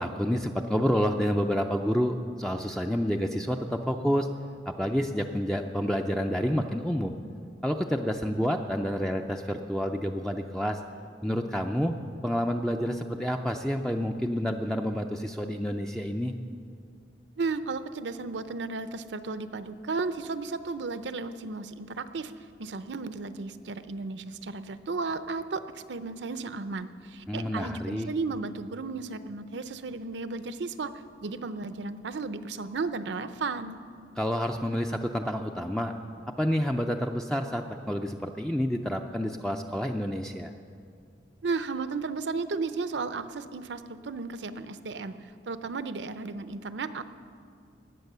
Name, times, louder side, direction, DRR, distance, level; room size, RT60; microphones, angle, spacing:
voice 1, 0.0-4.3 4.7-7.1 7.6-10.8 11.2-12.0 12.2-16.3 27.3-28.1 34.2-35.9 36.4-40.5, equal, 5° left, 3 dB, 0.4 m, -29 dB
voice 2, 17.4-22.3 22.6-30.9 31.2-33.8 41.4-45.1 45.5-47.0, right 4 dB, 70° right, 12 dB, 0.6 m, -34 dB
18.5 x 8.3 x 6.7 m, 2.4 s
head